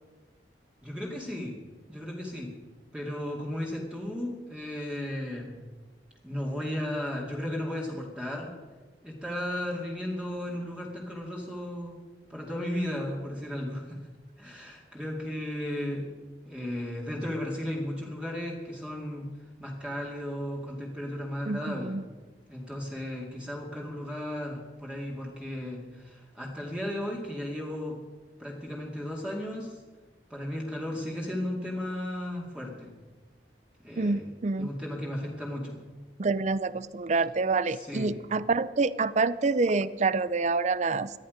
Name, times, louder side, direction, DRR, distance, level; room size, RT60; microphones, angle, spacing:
voice 1, 0.8-1.6 1.9-2.6 2.9-5.6 6.2-8.5 9.0-12.0 12.3-14.0 14.4-16.1 16.4-19.3 19.6-21.9 22.5-28.0 28.4-29.8 30.3-32.9 33.8-34.2 34.6-35.8 37.7-38.1, left 1 dB, 5° right, -3 dB, 2.3 m, -35 dB
voice 2, 21.5-22.0 34.0-34.7 36.2-41.1, right 3 dB, 40° right, 16 dB, 0.5 m, -27 dB
19.0 x 13.0 x 5.2 m, 1.3 s
head